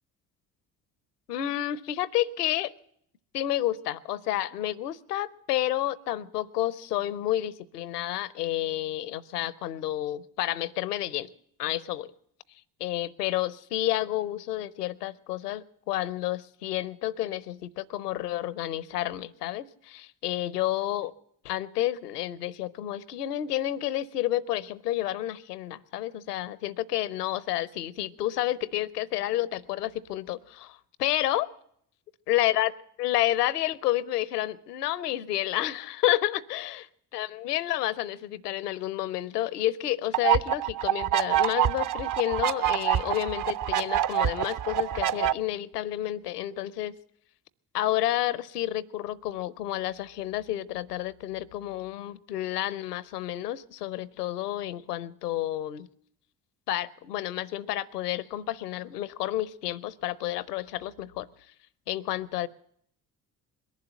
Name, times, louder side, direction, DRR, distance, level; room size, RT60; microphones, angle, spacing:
voice 1, 1.3-2.7 3.3-11.3 11.6-12.1 12.8-21.1 21.4-31.5 32.3-32.7 33.0-46.9 47.7-55.9 56.7-61.3 61.9-62.5, left 14 dB, 85° left, 23 dB, 0.7 m, -30 dB
sound 1, 40.1-45.3, right 12 dB, 45° right, 0.7 m, -26 dB
21.5 x 7.4 x 9.1 m, 0.69 s
figure-of-eight pair, 45°, 46 cm